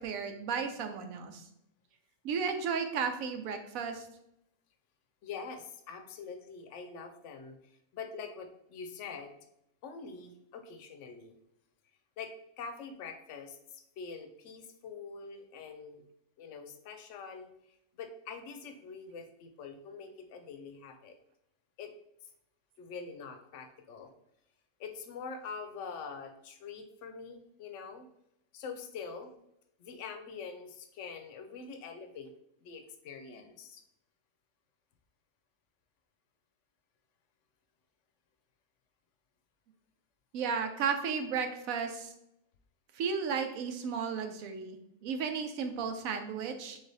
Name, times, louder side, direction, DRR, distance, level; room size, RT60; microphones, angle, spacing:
voice 1, 0.0-1.4 2.2-4.0 40.3-42.1 43.0-46.8, right 6 dB, 75° right, 7 dB, 1.1 m, -34 dB
voice 2, 5.2-9.3 9.8-11.3 12.2-16.1 16.4-17.5 17.9-21.1 21.8-21.9 22.8-24.1 24.8-28.1 28.5-29.3 29.8-32.3 32.6-33.8, left 5 dB, 65° left, 6 dB, 0.9 m, -44 dB
3.9 x 3.4 x 4.0 m, 0.79 s
omnidirectional pair, 1.5 m